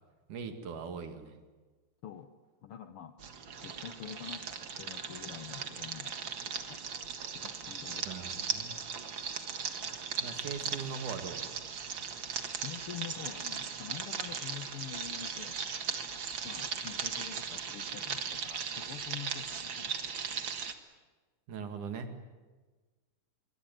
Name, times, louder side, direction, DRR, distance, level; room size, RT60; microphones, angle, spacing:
voice 1, 0.3-1.4 8.1-8.8 10.2-11.4 21.5-22.1, right 5 dB, 60° right, 7 dB, 3.4 m, -40 dB
voice 2, 2.6-3.1 3.6-4.4 4.7-6.8 7.3-8.1 12.6-15.6 16.4-19.9, left 9 dB, 75° left, 8 dB, 1.3 m, -46 dB
sound 1, 3.2-20.7, right 6 dB, 45° right, 1.7 m, -38 dB
25.5 x 23.5 x 9.1 m, 1.3 s
omnidirectional pair, 4.1 m